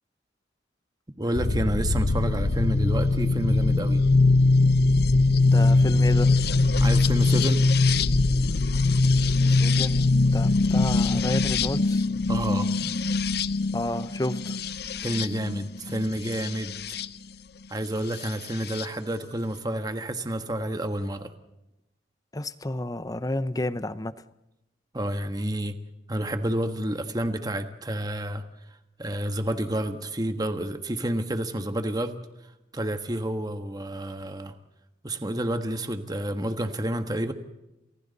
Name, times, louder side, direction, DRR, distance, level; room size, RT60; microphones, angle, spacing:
voice 1, 1.2-4.0 6.8-7.7 12.3-12.7 15.0-17.0 17.7-21.3 24.9-25.8 26.1-28.4 29.0-32.2 32.7-34.5 35.0-37.3, right 1 dB, 20° right, 1.3 m, -29 dB
sound 1, 1.3-17.1 18.2-18.9, left 3 dB, 60° left, 0.8 m, -22 dB
voice 2, 5.4-6.4 9.6-12.0 13.7-14.6 22.3-24.1, left 1 dB, 20° left, 0.8 m, -31 dB
30.0 x 28.0 x 4.1 m
head